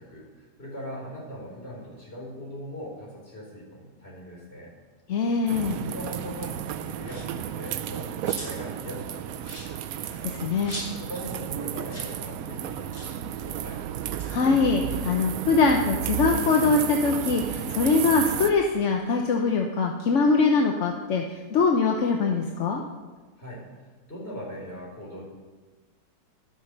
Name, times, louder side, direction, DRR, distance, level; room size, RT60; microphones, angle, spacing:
voice 1, 0.0-4.7 5.7-9.5 11.0-13.8 23.4-25.2, equal, 40° left, -3 dB, 4.4 m, -40 dB
voice 2, 5.1-5.8 10.0-10.8 14.3-21.2 21.5-22.8, left 4 dB, 55° left, 2 dB, 1.0 m, -23 dB
sound 1, 5.5-18.5, right 10 dB, 70° right, 1.0 m, -33 dB
sound 2, 7.0-7.4 7.9-8.7 9.0-9.1 9.4-11.3 11.5-11.6 11.8-12.2 12.4-12.5 12.9-13.2 14.0-15.7 16.1-17.6, equal, 80° left, 5.1 m, -43 dB
12.5 x 6.0 x 6.6 m, 1.3 s
omnidirectional pair, 1.7 m